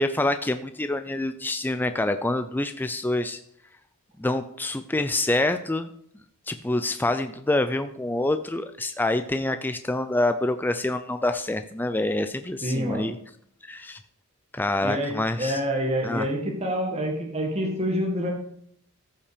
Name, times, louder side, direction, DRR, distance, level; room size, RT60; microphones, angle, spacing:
voice 1, 0.0-3.4 4.2-5.9 6.5-13.1 13.6-14.0 14.5-15.6 16.0-16.3, left 2 dB, 10° left, 9 dB, 0.4 m, -26 dB
voice 2, 12.6-13.1 14.8-18.3, equal, 30° right, 0 dB, 1.7 m, -27 dB
14.5 x 5.8 x 5.1 m, 0.68 s
head